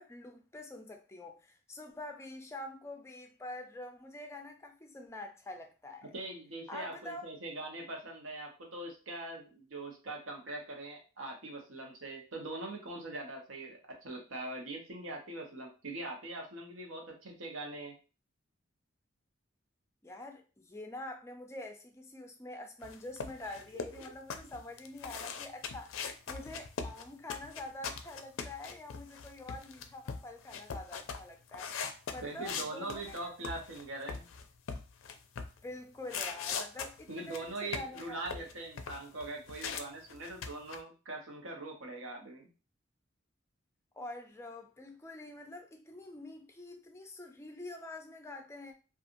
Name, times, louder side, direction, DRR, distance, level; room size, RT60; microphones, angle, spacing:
voice 1, 0.0-6.1 6.7-7.3 20.0-33.3 35.6-38.5 43.9-48.7, left 2 dB, 15° left, 0.4 m, -46 dB
voice 2, 6.1-17.9 23.7-24.0 32.2-34.3 37.1-42.5, right 2 dB, 90° right, 0.9 m, -42 dB
sound 1, 22.8-33.8 34.1-35.6 36.1-39.8 40.1-40.8, left 6 dB, 90° left, 0.4 m, -41 dB
2.8 x 2.4 x 2.5 m
head